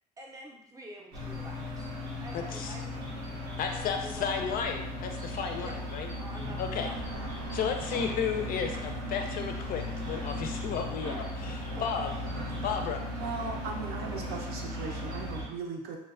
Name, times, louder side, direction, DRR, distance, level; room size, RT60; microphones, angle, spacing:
voice 1, 0.2-1.9 2.2-3.1 3.6-4.6 5.6-7.1 11.4-12.1, right 1 dB, 20° right, 0 dB, 0.5 m, -47 dB
sound 1, 1.1-15.4, left 1 dB, 90° right, 0.9 m, -37 dB
voice 2, 2.3-2.7 3.6-6.1 6.6-6.9 7.5-12.1 12.6-13.0, left 7 dB, 60° left, 4 dB, 0.4 m, -33 dB
voice 3, 13.2-16.0, right 4 dB, 70° right, 1 dB, 0.5 m, -38 dB
3.0 x 2.2 x 2.3 m, 0.83 s
cardioid pair, 110°, 17 cm